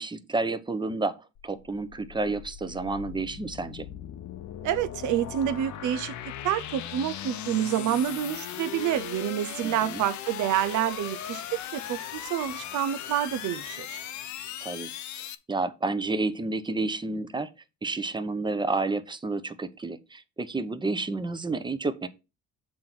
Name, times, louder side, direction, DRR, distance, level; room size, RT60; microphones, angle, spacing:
voice 1, 0.0-3.9 9.6-10.0 14.6-17.5 17.8-22.1, right 3 dB, 15° right, 0.8 m, -30 dB
sound 1, 1.4-15.4, left 11 dB, 70° left, 0.8 m, -38 dB
voice 2, 4.6-6.1 6.4-14.0, right 11 dB, 75° right, 0.6 m, -28 dB
7.6 x 3.9 x 5.9 m
cardioid pair, 90°, 30 cm